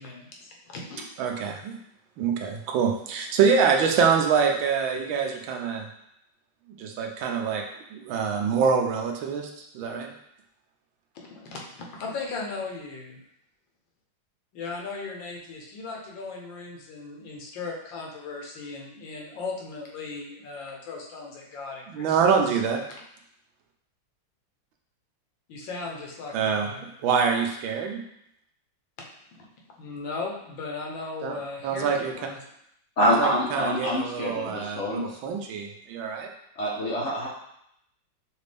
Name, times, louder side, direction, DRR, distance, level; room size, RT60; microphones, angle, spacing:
voice 1, 0.0-1.0 11.1-13.2 14.5-22.2 22.5-22.6 25.5-26.9 29.3-29.5 29.8-32.4, left 4 dB, 75° left, 0 dB, 1.6 m, -37 dB
voice 2, 1.2-1.8 2.2-5.9 6.8-7.6 7.9-10.1 21.9-22.8 26.3-26.7 27.0-28.0 31.2-31.4 31.6-32.1 33.0-36.3, right 6 dB, 85° right, 2 dB, 1.5 m, -25 dB
voice 3, 33.0-35.2 36.6-37.3, equal, 55° left, -4 dB, 0.9 m, -26 dB
6.3 x 2.5 x 3.4 m, 0.75 s
omnidirectional pair, 2.1 m